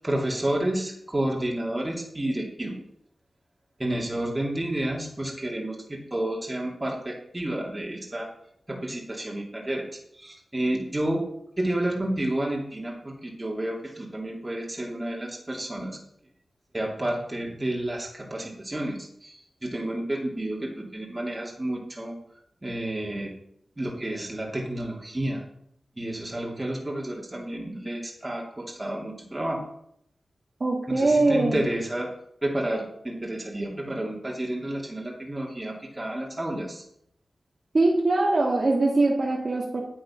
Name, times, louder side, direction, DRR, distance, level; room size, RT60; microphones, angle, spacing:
voice 1, 0.0-2.8 3.8-8.3 8.7-11.2 11.6-16.0 16.7-22.2 22.6-23.3 23.8-25.4 26.0-29.6 30.9-32.1 32.4-36.8, right 1 dB, 25° right, -2 dB, 2.6 m, -30 dB
voice 2, 30.6-31.6 37.7-39.8, right 2 dB, 55° right, -1 dB, 1.9 m, -22 dB
9.2 x 7.6 x 5.8 m, 0.73 s
cardioid pair, 45°, 0 cm